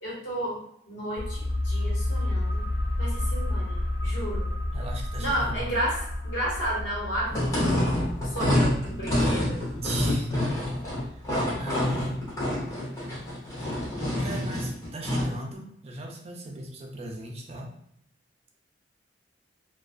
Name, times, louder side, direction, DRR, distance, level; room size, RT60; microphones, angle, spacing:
voice 1, 0.0-2.6 3.0-4.5 5.2-8.0 8.2-9.6, equal, 75° left, -6 dB, 1.1 m, -32 dB
sound 1, 1.2-12.5 12.8-12.9, left 1 dB, 55° left, 0.3 m, -31 dB
voice 2, 4.7-5.6 9.8-10.3 10.9-11.1 11.6-12.2 14.2-17.7, right 2 dB, 35° right, 1 dB, 0.4 m, -38 dB
sound 2, 7.3-15.4, left 1 dB, 20° left, 0.8 m, -27 dB
2.3 x 2.3 x 2.4 m, 0.74 s
head